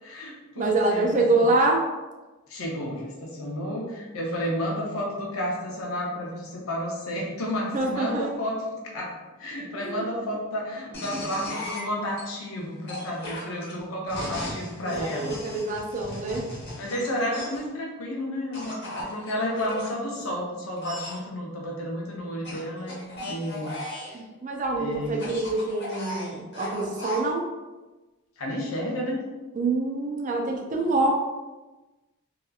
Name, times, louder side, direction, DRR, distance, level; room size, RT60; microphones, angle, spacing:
voice 1, 0.0-1.5 2.5-15.4 16.7-23.7 24.1-24.2 24.8-25.2 28.4-29.2 30.5-30.8, equal, 75° left, -2 dB, 0.7 m, -31 dB
voice 2, 0.5-1.8 7.7-8.3 9.8-10.1 14.8-16.4 24.1-27.5 29.5-31.1, right 2 dB, 35° right, 0 dB, 0.4 m, -25 dB
sound 1, 10.9-12.2 12.9-17.7 18.5-19.9 20.8-21.2 22.4-24.2 25.1-27.2, left 1 dB, 50° left, 1.0 m, -37 dB
2.8 x 2.3 x 2.3 m, 1.1 s
head